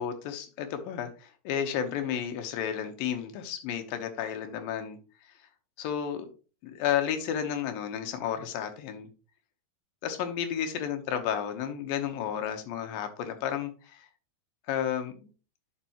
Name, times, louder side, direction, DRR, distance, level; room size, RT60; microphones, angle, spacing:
voice 1, 0.0-5.0 5.8-6.3 6.6-9.1 10.0-14.1 14.7-15.3, left 9 dB, 80° left, 7 dB, 2.7 m, -32 dB
10.5 x 5.2 x 2.9 m, 0.34 s
omnidirectional pair, 4.1 m